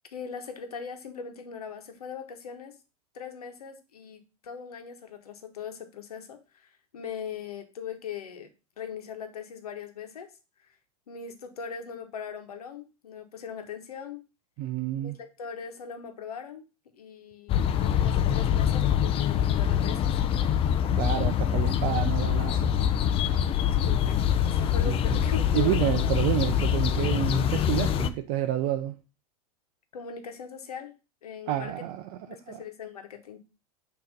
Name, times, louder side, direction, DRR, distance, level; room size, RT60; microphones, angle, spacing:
voice 1, 0.1-2.8 3.1-10.3 11.1-14.2 15.0-16.7 16.9-20.2 23.7-26.2 29.9-30.9 31.2-31.7 32.3-33.4, left 7 dB, 85° left, 1.1 m, -40 dB
voice 2, 14.6-15.2 21.0-22.8 24.8-28.9 31.5-32.2 32.5-32.6, right 12 dB, 50° right, 0.5 m, -29 dB
sound 1, 17.5-28.1, left 9 dB, 30° left, 0.5 m, -25 dB
6.3 x 2.9 x 5.1 m
hypercardioid pair, 105°, 19 cm